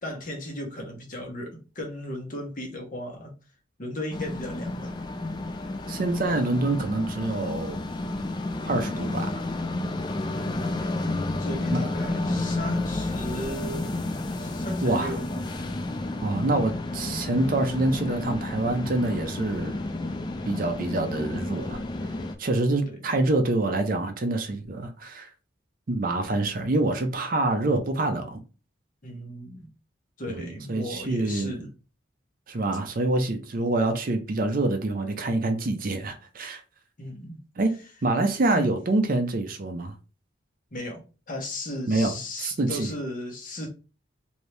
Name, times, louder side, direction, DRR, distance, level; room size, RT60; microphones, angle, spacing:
voice 1, 0.0-3.3 3.8-4.9 11.1-13.9 14.3-15.4 22.9-23.1 29.0-29.7 30.2-31.7 37.0-37.4 38.5-38.7 40.7-41.0 41.3-43.7, left 1 dB, 45° left, 1.0 m, -36 dB
sound 1, 4.1-22.4, left 2 dB, 25° left, 0.3 m, -31 dB
voice 2, 5.9-7.8 8.6-9.3 11.7-11.9 14.8-15.1 16.2-19.7 20.5-21.8 22.4-25.3 25.9-28.4 30.3-31.6 32.5-36.6 37.6-37.8 38.0-39.9 41.9-42.1 42.4-42.9, right 2 dB, 45° right, 0.5 m, -26 dB
2.9 x 2.6 x 3.2 m
head